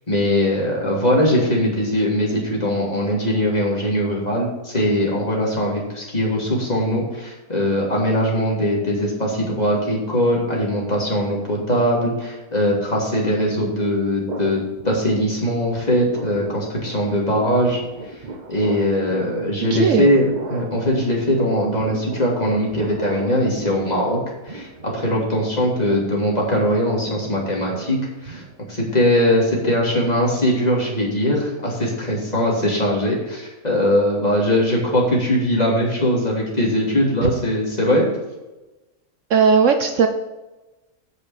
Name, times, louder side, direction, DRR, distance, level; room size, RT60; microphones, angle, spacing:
voice 1, 0.1-28.4 28.7-38.1, equal, 25° left, -4 dB, 3.1 m, -21 dB
sound 1, 14.3-15.5 15.8-28.9, right 3 dB, 35° right, 0.9 m, -36 dB
voice 2, 19.7-20.1 37.2-37.3 39.3-40.1, right 5 dB, 65° right, 6 dB, 1.1 m, -16 dB
8.7 x 6.5 x 7.2 m, 1.1 s
omnidirectional pair, 1.5 m